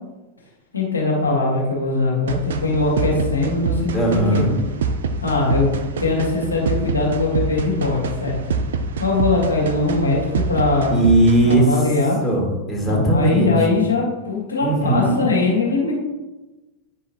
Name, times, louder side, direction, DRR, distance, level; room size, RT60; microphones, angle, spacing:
voice 1, 0.7-4.5 5.2-5.7 6.0-8.4 9.0-11.0 11.4-12.2 12.9-15.9, left 3 dB, 80° left, -4 dB, 1.9 m, -21 dB
sound 1, 2.3-11.6, right 4 dB, 60° right, 0.5 m, -26 dB
voice 2, 3.9-4.6 10.9-11.7 12.2-13.6 14.6-15.2, right 1 dB, 10° left, -3 dB, 2.2 m, -18 dB
9.5 x 5.5 x 2.9 m, 1.1 s
figure-of-eight pair, 90°, 0 cm